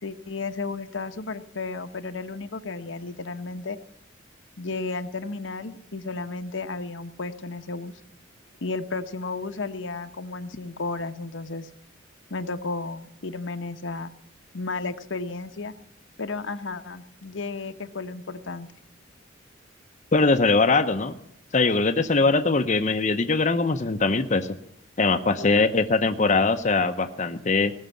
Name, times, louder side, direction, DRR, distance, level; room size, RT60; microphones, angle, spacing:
voice 1, 0.0-3.8 4.6-8.0 8.6-11.7 12.3-14.1 14.5-15.7 16.2-18.7 25.4-25.5, left 3 dB, 70° left, 8 dB, 1.0 m, -33 dB
voice 2, 20.1-21.2 21.5-24.5 25.0-27.7, left 3 dB, 35° left, 6 dB, 0.7 m, -21 dB
18.5 x 6.5 x 9.4 m, 0.75 s
head